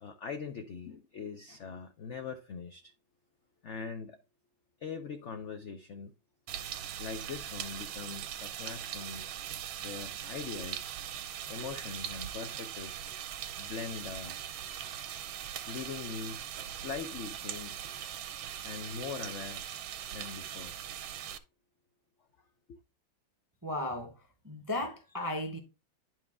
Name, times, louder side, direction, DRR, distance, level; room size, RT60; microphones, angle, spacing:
voice 1, 0.0-2.9 3.6-4.2 4.8-6.1 7.0-9.3 9.8-10.9 11.5-13.0 13.6-14.4 15.4-16.4 16.7-17.9 18.6-19.6 20.1-20.8 21.2-21.3 22.7-22.8, left 5 dB, 75° left, 0.6 m, -42 dB
sound 1, 6.5-21.4, right 10 dB, 90° right, 1.5 m, -41 dB
voice 2, 23.6-24.2 24.4-25.6, left 1 dB, 25° right, 0.4 m, -35 dB
9.8 x 4.6 x 3.5 m
omnidirectional pair, 2.1 m